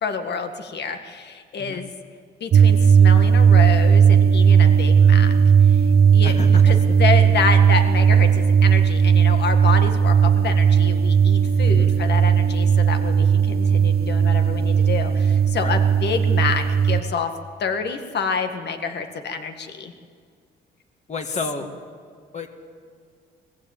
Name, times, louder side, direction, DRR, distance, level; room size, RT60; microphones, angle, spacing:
voice 1, 0.0-1.9 2.4-5.3 5.6-5.8 6.1-6.4 6.6-17.3 17.6-19.9, left 5 dB, 60° left, 7 dB, 1.8 m, -28 dB
sound 1, 2.5-17.0, right 7 dB, 50° right, 0.8 m, -16 dB
voice 2, 6.2-6.6 11.7-11.9 15.6-15.7 21.1-21.7 22.3-22.5, left 3 dB, 35° left, 4 dB, 2.2 m, -30 dB
20.0 x 15.0 x 8.9 m, 2.1 s
cardioid pair, 90°, 20 cm